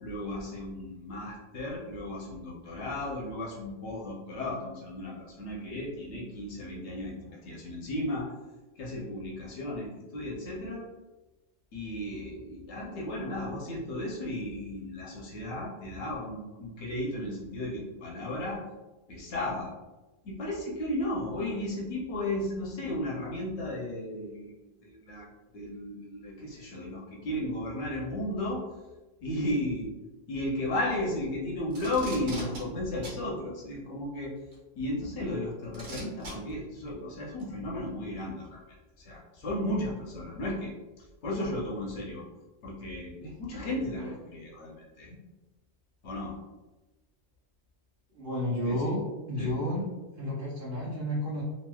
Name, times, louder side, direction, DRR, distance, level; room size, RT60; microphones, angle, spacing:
voice 1, 0.0-8.3 8.8-10.9 11.7-18.6 19.1-19.7 20.2-24.5 24.8-25.3 25.5-28.6 29.2-29.9 30.3-34.3 34.8-38.6 39.0-40.7 41.0-42.2 42.6-45.2 46.0-46.3 48.6-48.8 49.4-49.5, left 1 dB, 80° left, -3 dB, 1.0 m, -34 dB
Packing tape duct tape, 31.7-32.6 33.0-33.2 34.5-34.6 35.7-36.3 37.4-37.5, right 1 dB, 85° right, 1.3 m, -40 dB
voice 2, 48.1-49.8 50.2-51.4, left 1 dB, 55° right, -8 dB, 0.9 m, -31 dB
3.0 x 2.7 x 2.2 m, 1.1 s
omnidirectional pair, 1.1 m